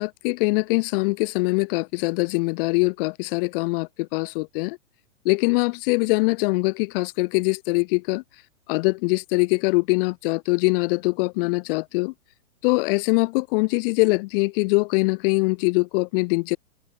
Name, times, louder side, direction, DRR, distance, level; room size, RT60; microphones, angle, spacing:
voice 1, 0.0-4.8 5.2-8.2 8.7-12.1 12.6-16.6, left 26 dB, 40° left, 4.0 m, -23 dB
hypercardioid pair, 135°, 41 cm